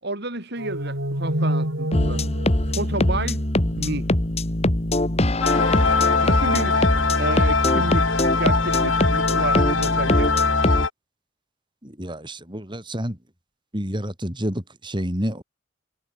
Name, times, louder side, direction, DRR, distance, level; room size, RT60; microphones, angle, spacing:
voice 1, 0.0-2.2 2.7-3.4 3.8-4.1 6.2-6.7 7.1-10.3, right 2 dB, 55° right, 6.6 m, -30 dB
sound 1, 0.6-4.0, equal, 80° right, 7.6 m, -28 dB
sound 2, 1.9-10.9, left 1 dB, 30° left, 1.8 m, -22 dB
sound 3, 5.4-10.9, left 4 dB, 80° left, 4.0 m, -22 dB
voice 2, 11.8-13.2 13.7-15.4, equal, 25° right, 5.5 m, -29 dB
head